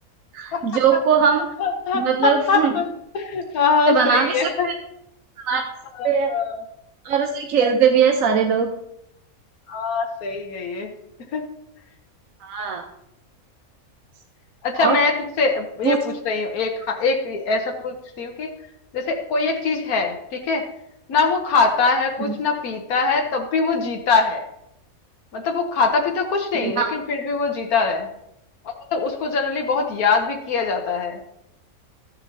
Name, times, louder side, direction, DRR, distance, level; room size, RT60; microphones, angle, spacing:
voice 1, 0.3-1.5 1.9-2.7 3.9-4.7 5.4-5.6 6.0-6.3 7.0-8.7 12.4-12.8 14.8-15.0 15.8-16.0 22.2-22.3 26.5-26.9, right 6 dB, 70° right, 3 dB, 1.2 m, -20 dB
voice 2, 1.6-2.9 3.1-4.7 6.0-6.6 9.7-10.9 11.3-11.5 14.6-18.5 18.9-20.6 21.1-24.4 25.3-28.1 28.6-31.2, left 4 dB, 90° left, 2 dB, 1.4 m, -23 dB
14.0 x 7.3 x 2.7 m, 0.81 s
omnidirectional pair, 1.5 m